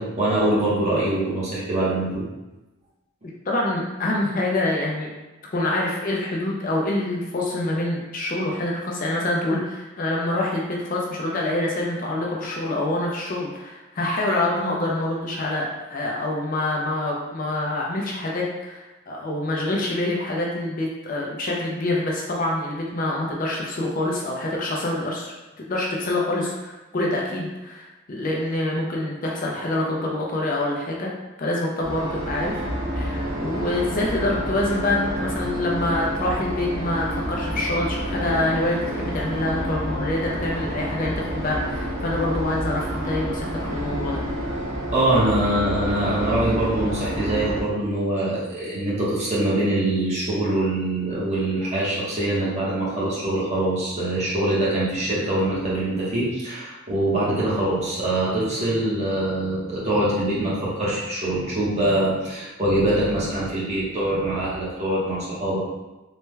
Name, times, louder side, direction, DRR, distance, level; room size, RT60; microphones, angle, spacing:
voice 1, 0.0-2.2 44.9-65.6, right 1 dB, 30° right, -7 dB, 0.8 m, -23 dB
voice 2, 3.5-5.1 5.5-25.3 25.7-31.1 31.4-32.6 32.9-44.3, left 1 dB, 40° left, -2 dB, 0.4 m, -26 dB
sound 1, 31.8-47.6, equal, 70° right, 0.7 m, -29 dB
3.2 x 2.1 x 3.2 m, 1.1 s
head